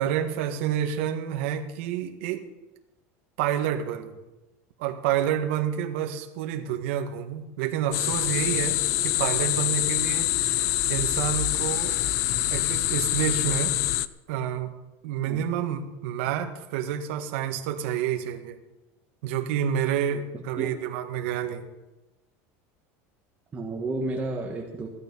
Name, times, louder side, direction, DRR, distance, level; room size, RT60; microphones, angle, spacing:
voice 1, 0.0-2.4 3.4-4.1 4.8-12.0 12.5-13.8 14.3-14.7 15.0-18.6 19.2-21.7, right 9 dB, 75° right, 5 dB, 1.7 m, -29 dB
sound 1, 7.9-14.1, left 15 dB, 50° left, 0.5 m, -25 dB
voice 2, 20.1-20.7 23.5-24.9, right 2 dB, 20° right, -1 dB, 1.6 m, -32 dB
16.5 x 12.5 x 5.5 m, 1.0 s
cardioid pair, 160°, 7 cm